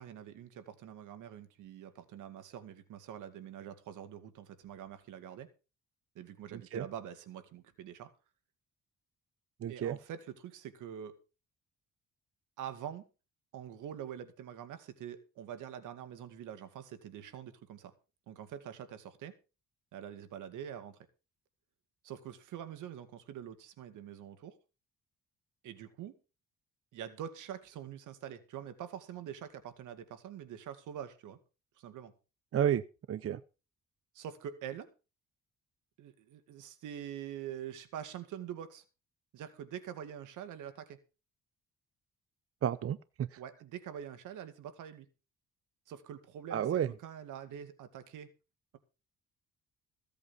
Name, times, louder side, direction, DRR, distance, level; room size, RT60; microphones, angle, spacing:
voice 1, 0.0-5.5 6.2-8.1 9.7-11.1 12.6-13.0 13.5-17.9 18.3-19.3 19.9-21.0 22.0-24.6 25.6-26.2 26.9-31.4 31.8-32.1 34.1-34.9 36.0-38.8 39.3-41.0 43.4-45.1 45.9-48.3, right 9 dB, 85° right, 10 dB, 2.2 m, -45 dB
voice 2, 6.5-6.8 9.6-10.0 32.5-33.4 42.6-43.4 46.5-46.9, right 9 dB, 50° right, 16 dB, 0.7 m, -32 dB
16.0 x 8.3 x 5.6 m, 0.33 s
cardioid pair, 90°, 30 cm